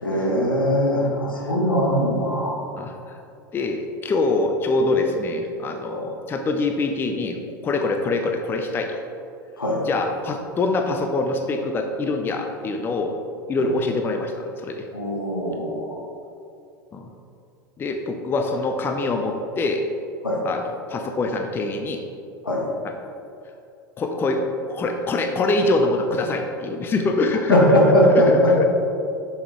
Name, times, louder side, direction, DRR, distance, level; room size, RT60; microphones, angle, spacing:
voice 1, 0.0-2.5 5.9-6.0 9.6-9.9 13.6-13.7 14.9-16.0 20.2-20.4 22.4-22.6 27.5-28.7, equal, 80° left, -2 dB, 1.5 m, -20 dB
voice 2, 2.8-3.2 3.5-7.4 7.6-9.0 9.9-13.2 13.5-14.9 16.9-17.1 17.8-19.9 20.4-20.6 20.9-22.0 23.0-23.1 24.0-24.4 24.7-27.6 28.1-28.7, left 2 dB, 20° left, 4 dB, 0.5 m, -24 dB
6.9 x 6.6 x 3.6 m, 2.6 s
figure-of-eight pair, 85°, 11 cm